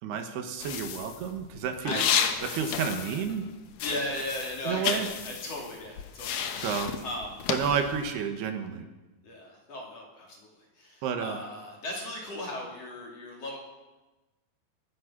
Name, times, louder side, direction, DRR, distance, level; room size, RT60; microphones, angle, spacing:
voice 1, 0.0-2.0 2.4-3.5 4.6-5.1 6.6-7.0 7.5-8.9 11.0-11.4, right 7 dB, 80° right, 6 dB, 3.3 m, -30 dB
sound 1, 0.6-3.5 3.7-8.1, left 8 dB, 85° left, 1.5 m, -32 dB
voice 2, 3.8-6.7 7.0-7.4 9.2-10.5 10.8-13.6, left 1 dB, 40° left, -1 dB, 3.3 m, -37 dB
21.5 x 10.5 x 6.1 m, 1.1 s
omnidirectional pair, 4.7 m